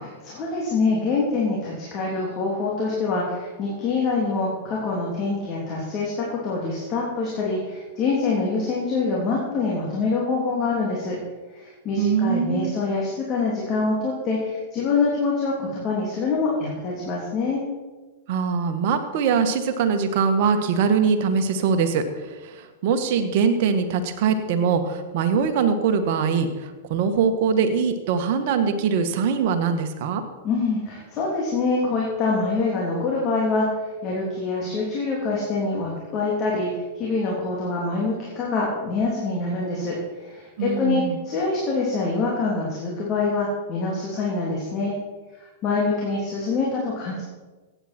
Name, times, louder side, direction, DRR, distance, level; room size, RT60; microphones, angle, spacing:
voice 1, 0.0-11.2 11.6-17.6 30.4-33.7 34.0-44.9 45.6-47.3, left 3 dB, 35° left, -4 dB, 3.2 m, -25 dB
voice 2, 12.0-12.7 18.3-22.0 22.4-30.2 40.6-41.2, right 6 dB, 55° right, 7 dB, 1.5 m, -22 dB
15.0 x 9.3 x 4.4 m, 1.3 s
hypercardioid pair, 115°, 0 cm